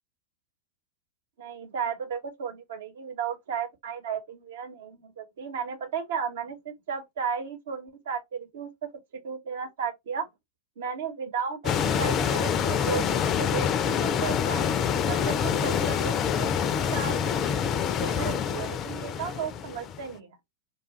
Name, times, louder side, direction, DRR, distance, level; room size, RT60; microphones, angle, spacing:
voice 1, 1.4-10.3 10.8-14.6 15.1-16.5 16.9-17.6 18.0-20.3, right 6 dB, 60° right, 1.0 m, -34 dB
sound 1, 11.6-20.0, left 7 dB, 30° left, 0.4 m, -26 dB
4.9 x 2.3 x 3.0 m
figure-of-eight pair, 90°, 0 cm